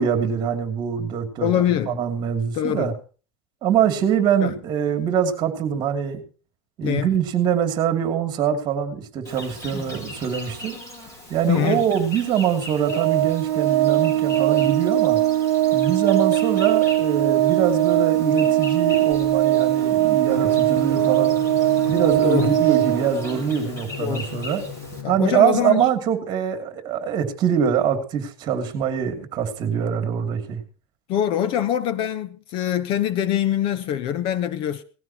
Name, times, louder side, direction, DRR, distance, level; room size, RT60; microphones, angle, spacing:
voice 1, 0.0-2.9 3.6-6.2 6.8-10.8 11.3-15.2 15.7-21.4 21.9-24.6 25.1-30.6, right 8 dB, 30° right, 2.8 m, -23 dB
voice 2, 1.4-2.0 2.5-2.9 4.4-4.5 6.8-7.1 11.5-11.8 22.2-22.6 24.0-24.3 25.0-25.9 31.1-34.8, left 10 dB, 40° left, 0.9 m, -23 dB
Insect, 9.2-25.0, left 1 dB, 20° left, 4.7 m, -39 dB
Organ, 12.8-23.6, right 15 dB, 70° right, 0.9 m, -20 dB
Drum, 20.3-25.3, left 6 dB, 85° left, 6.2 m, -36 dB
18.5 x 15.5 x 3.0 m
supercardioid pair, 150°, 14 cm